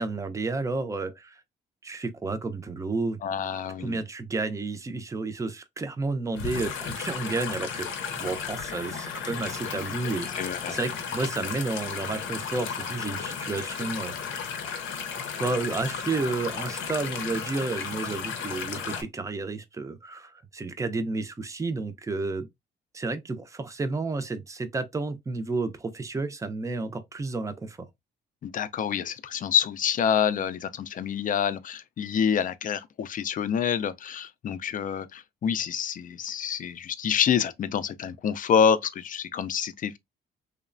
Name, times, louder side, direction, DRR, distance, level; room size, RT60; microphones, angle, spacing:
voice 1, 0.0-1.4 1.8-3.2 3.8-7.9 8.2-14.5 15.4-22.5 22.9-27.9, right 3 dB, 15° right, 0.4 m, -31 dB
voice 2, 3.2-4.0 10.4-10.8 28.4-40.0, left 7 dB, 45° left, 0.4 m, -27 dB
sound 1, 6.3-19.0, left 6 dB, 80° left, 0.6 m, -34 dB
3.0 x 2.1 x 2.4 m
cardioid pair, 90°, 20 cm